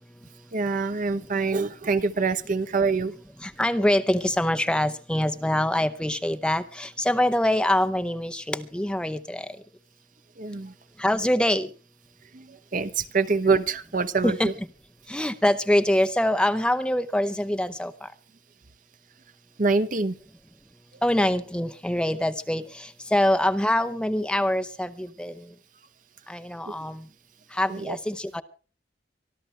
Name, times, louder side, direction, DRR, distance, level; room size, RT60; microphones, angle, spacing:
voice 1, 0.5-3.1 10.4-10.7 12.3-14.5 19.6-20.2 26.6-26.7 27.7-28.0, right 4 dB, 50° right, 13 dB, 0.8 m, -25 dB
voice 2, 3.4-9.6 11.0-11.7 14.2-14.5 15.1-18.1 21.0-25.5 26.3-27.0 27.5-28.4, left 1 dB, 5° left, 9 dB, 0.7 m, -24 dB
25.0 x 12.5 x 3.3 m, 0.35 s
head